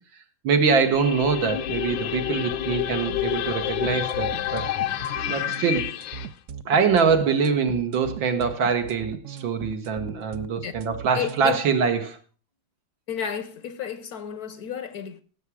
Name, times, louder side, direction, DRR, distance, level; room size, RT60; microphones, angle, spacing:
voice 1, 0.4-4.7 5.3-5.9 6.7-12.2, right 5 dB, 85° right, 2.2 m, -24 dB
sound 1, 0.8-6.3, left 12 dB, 85° left, 1.5 m, -29 dB
sound 2, 3.8-11.4, right 7 dB, 65° right, 0.7 m, -38 dB
voice 2, 11.1-11.6 13.1-15.2, left 8 dB, 65° left, 1.1 m, -31 dB
16.5 x 7.2 x 4.8 m
omnidirectional pair, 2.1 m